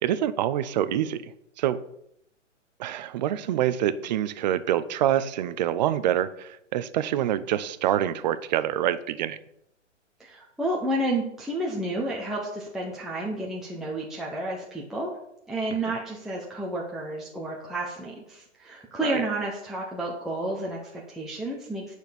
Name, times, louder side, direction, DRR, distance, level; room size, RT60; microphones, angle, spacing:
voice 1, 0.0-1.3 1.6-1.8 2.8-9.4 15.9-16.0 19.0-19.2, right 11 dB, 35° right, 14 dB, 0.6 m, -26 dB
voice 2, 10.2-15.2 15.5-21.9, right 1 dB, ahead, -4 dB, 0.8 m, -31 dB
9.2 x 6.4 x 5.2 m, 0.76 s
hypercardioid pair, 145°, 37 cm